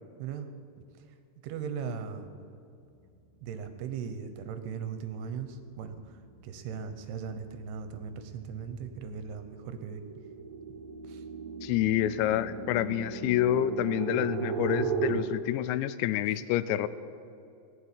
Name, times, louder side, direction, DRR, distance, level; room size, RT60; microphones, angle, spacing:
voice 1, 1.4-2.3 3.4-5.5 5.8-6.0 6.4-10.0 11.1-11.2, right 7 dB, 75° right, 9 dB, 2.8 m, -38 dB
sound 1, 5.7-5.8 6.2-15.1, right 6 dB, 55° right, 2.0 m, -37 dB
voice 2, 11.6-16.9, left 12 dB, 90° left, 15 dB, 2.9 m, -28 dB
17.5 x 7.4 x 9.9 m, 2.5 s
omnidirectional pair, 5.0 m